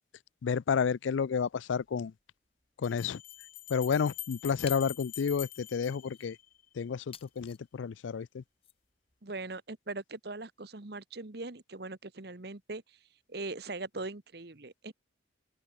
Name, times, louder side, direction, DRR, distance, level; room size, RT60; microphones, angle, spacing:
voice 1, 0.4-2.1 2.8-3.2 3.7-6.4 6.7-8.4, left 6 dB, 80° left, 0.4 m, -31 dB
Bell, 2.8-6.8, left 14 dB, 45° left, 3.5 m, -45 dB
sound 1, 3.1-3.4 4.7-5.0 5.8-6.3 7.1-7.7 8.6-8.8, left 8 dB, 30° left, 3.3 m, -52 dB
voice 2, 9.2-13.0 13.3-14.9, right 3 dB, 55° right, 1.2 m, -41 dB
open air
head